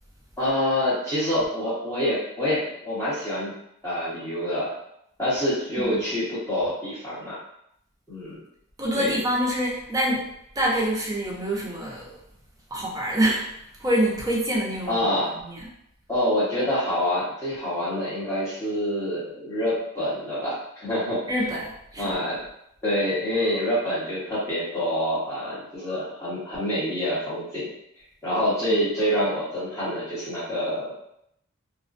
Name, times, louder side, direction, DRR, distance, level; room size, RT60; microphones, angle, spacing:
voice 1, 0.4-3.5 3.8-4.7 5.2-7.4 8.1-8.4 8.9-9.2 14.9-15.4 16.1-21.4 22.0-22.4 22.8-27.7 28.2-30.9, equal, 10° left, -11 dB, 1.0 m, -26 dB
voice 2, 8.8-10.2 10.6-12.1 12.7-13.5 13.8-15.1 15.5-15.7 21.3-22.1, equal, 15° right, -4 dB, 0.4 m, -26 dB
2.4 x 2.1 x 2.5 m, 0.76 s
head